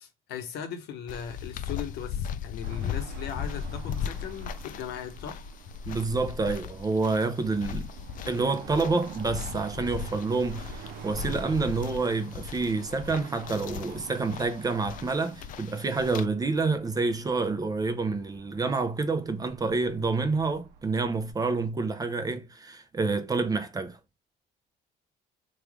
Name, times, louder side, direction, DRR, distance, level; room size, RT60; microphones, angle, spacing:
voice 1, 0.0-5.5, left 8 dB, 80° left, 0.8 m, -38 dB
sound 1, 1.1-16.2, left 8 dB, 55° left, 0.4 m, -38 dB
Car passing by / Traffic noise roadway noise / Engine, 2.6-21.3, right 7 dB, 75° right, 0.5 m, -47 dB
voice 2, 5.9-7.9 8.3-24.0, right 3 dB, 20° right, 0.5 m, -28 dB
3.2 x 2.3 x 3.5 m
cardioid pair, 110°, 17 cm